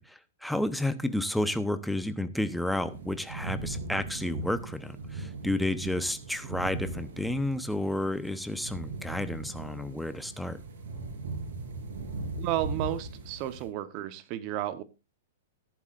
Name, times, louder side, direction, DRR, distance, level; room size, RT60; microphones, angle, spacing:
voice 1, 0.0-10.6, left 1 dB, ahead, 12 dB, 1.0 m, -31 dB
sound 1, 2.9-13.7, right 3 dB, 70° right, 3.9 m, -39 dB
voice 2, 12.4-14.8, right 13 dB, 45° right, 13 dB, 1.1 m, -32 dB
14.0 x 11.0 x 2.6 m, 0.28 s
hypercardioid pair, 120°, 0 cm